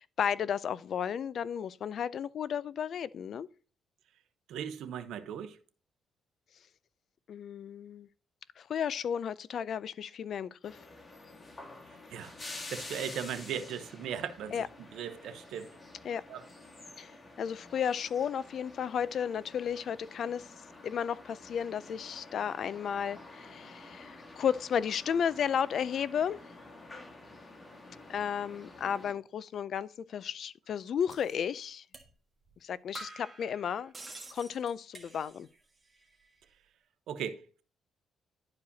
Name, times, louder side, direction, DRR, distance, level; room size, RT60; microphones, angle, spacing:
voice 1, 0.0-3.5 7.3-8.1 8.6-10.8 14.5-14.7 16.0-16.2 17.0-20.5 20.8-26.4 28.1-31.8 32.6-33.9 34.3-35.5, left 8 dB, 60° left, 0.4 m, -33 dB
voice 2, 4.5-5.6 12.1-12.3 12.7-14.6 14.9-15.7 16.3-16.4 37.1-37.6, right 8 dB, 80° right, 0.8 m, -38 dB
sound 1, 10.6-29.1, left 2 dB, 30° left, 1.6 m, -49 dB
sound 2, 31.1-31.3 31.9-32.1 32.5-32.6 32.9-35.6 35.9-36.4, right 3 dB, 20° right, 1.4 m, -49 dB
11.5 x 4.8 x 2.8 m
cardioid pair, 90°, 0 cm